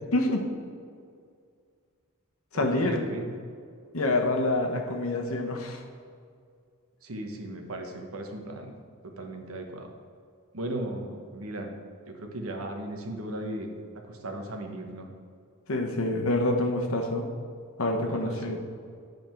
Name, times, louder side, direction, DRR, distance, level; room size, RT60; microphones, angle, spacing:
voice 1, 0.1-0.4 2.5-3.0 3.9-5.8 15.7-17.3 17.8-18.6, left 2 dB, 70° left, 3 dB, 1.1 m, -26 dB
voice 2, 2.5-3.3 7.0-8.7 9.0-9.9 10.5-11.7 12.1-13.7 14.1-15.1 18.1-18.6, right 1 dB, 70° right, 3 dB, 1.1 m, -36 dB
9.2 x 5.1 x 4.5 m, 2.2 s
head